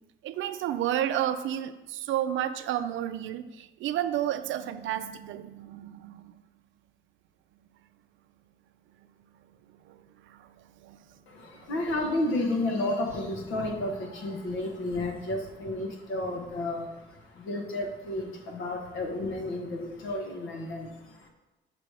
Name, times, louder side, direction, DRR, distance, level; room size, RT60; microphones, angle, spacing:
voice 1, 0.2-6.4 9.8-10.0 10.3-10.5 10.8-11.0, right 11 dB, 75° right, 11 dB, 0.4 m, -31 dB
voice 2, 11.3-21.3, left 2 dB, 80° left, 3 dB, 1.1 m, -32 dB
5.9 x 3.3 x 4.8 m, 1.1 s
cardioid pair, 90°, 20 cm